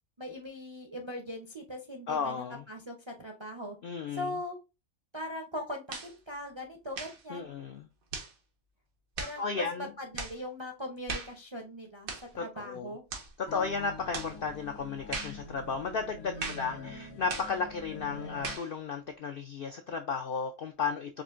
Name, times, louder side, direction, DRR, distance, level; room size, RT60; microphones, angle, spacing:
voice 1, 0.2-3.8 4.1-4.6 5.1-7.5 9.2-12.1 12.4-13.0 16.4-17.2, left 1 dB, 30° right, 0.5 m, -40 dB
voice 2, 2.1-2.6 3.8-4.3 7.3-7.9 9.4-9.9 12.4-12.9 13.4-21.2, left 5 dB, 65° left, 0.5 m, -34 dB
sound 1, 5.9-6.1 6.9-7.2 8.1-8.3 9.2-9.4 10.2-10.4 11.1-11.4 12.1-12.3 13.1-13.3 14.1-14.4 15.1-15.4 16.4-16.7 17.3-17.6 18.4-18.7, right 4 dB, 90° right, 1.4 m, -38 dB
sound 2, 13.5-18.6, left 3 dB, 90° left, 1.4 m, -45 dB
4.8 x 2.5 x 2.4 m
omnidirectional pair, 1.4 m